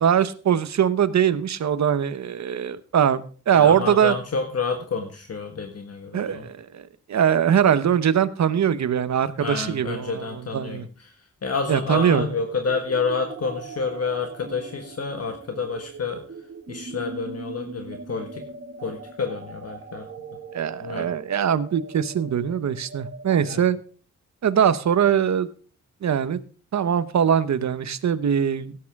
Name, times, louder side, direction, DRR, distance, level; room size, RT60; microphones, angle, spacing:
voice 1, 0.0-4.1 6.1-6.8 7.1-10.9 11.7-12.3 20.5-23.8 24.4-25.5 26.0-26.4 26.7-28.8, right 8 dB, 65° right, 13 dB, 0.9 m, -22 dB
voice 2, 3.5-6.5 9.4-16.2 16.7-18.4 18.8-20.1 20.8-21.1 23.4-23.6, left 4 dB, 55° left, 5 dB, 1.5 m, -29 dB
sound 1, 12.0-23.5, right 4 dB, 40° right, 1.7 m, -41 dB
16.5 x 8.7 x 3.5 m, 0.40 s
wide cardioid pair, 160°, 30 cm